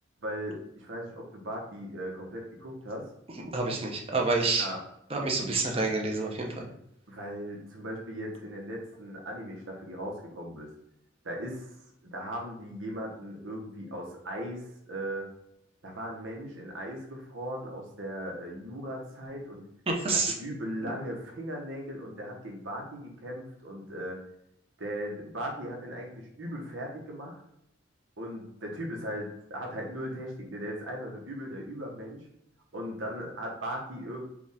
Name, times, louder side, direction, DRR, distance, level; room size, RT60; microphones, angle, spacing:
voice 1, 0.2-3.1 4.6-4.8 5.4-5.6 7.1-10.7 11.2-11.8 12.0-15.3 15.8-19.6 20.0-24.2 24.8-27.4 28.2-32.3 32.7-34.2, equal, 80° right, 0 dB, 1.1 m, -38 dB
voice 2, 3.5-4.7 5.1-6.5 19.9-20.3, right 3 dB, 30° right, 0 dB, 0.8 m, -28 dB
5.0 x 2.4 x 3.4 m, 0.77 s
head